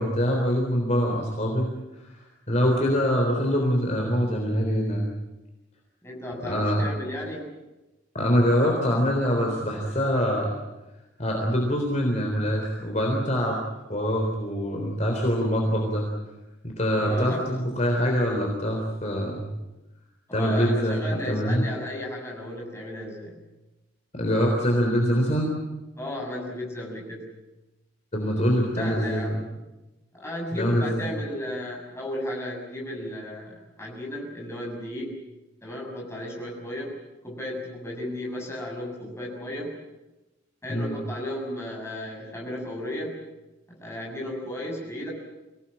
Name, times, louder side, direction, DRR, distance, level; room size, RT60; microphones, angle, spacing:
voice 1, 0.0-1.7 2.0-5.1 6.5-6.8 8.1-10.5 11.2-13.6 13.9-16.1 16.6-19.4 20.3-21.7 24.1-25.5 28.1-29.4 30.5-31.1 40.7-40.9, equal, 35° left, 1 dB, 3.7 m, -24 dB
voice 2, 6.0-7.5 17.0-17.6 20.3-23.3 26.0-27.3 28.8-29.5 30.1-35.2 35.6-37.0 37.2-39.7 40.6-43.2 43.8-45.1, left 1 dB, 15° left, -1 dB, 6.7 m, -34 dB
25.5 x 18.0 x 8.8 m, 1.1 s
head